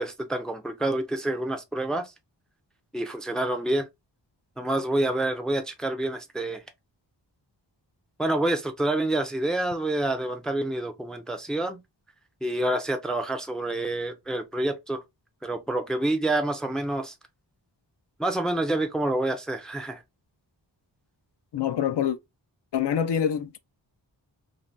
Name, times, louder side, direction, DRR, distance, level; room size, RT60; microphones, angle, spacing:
voice 1, 0.0-2.1 2.9-3.9 4.6-6.6 8.2-11.8 12.4-15.0 15.4-17.1 18.2-20.0, right 1 dB, ahead, 0.4 m, -27 dB
voice 2, 21.5-22.2 22.7-23.6, left 8 dB, 65° left, 0.5 m, -25 dB
2.6 x 2.1 x 3.3 m
wide cardioid pair, 85°, 45 cm